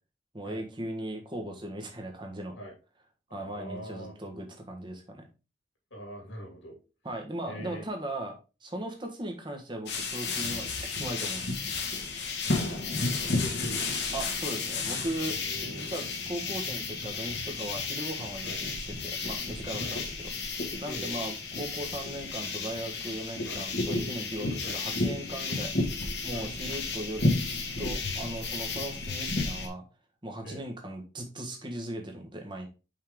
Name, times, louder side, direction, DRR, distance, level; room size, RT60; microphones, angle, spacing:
voice 1, 0.3-2.5 3.3-5.2 7.0-10.7 11.0-11.6 14.1-15.4 15.7-20.3 20.8-25.7 26.2-29.8 30.2-32.7, right 1 dB, 25° right, 3 dB, 1.5 m, -38 dB
voice 2, 3.3-4.1 5.9-6.8 7.5-7.8 12.4-12.7 13.2-13.9 15.4-15.9 18.4-18.6 19.8-20.1 20.8-21.3 23.4-23.7 24.6-24.8 26.3-26.5 28.7-28.8 30.4-30.6, equal, 80° left, 0 dB, 2.9 m, -42 dB
sound 1, 9.9-29.7, left 3 dB, 60° left, 1.8 m, -32 dB
5.7 x 5.4 x 3.7 m, 0.31 s
head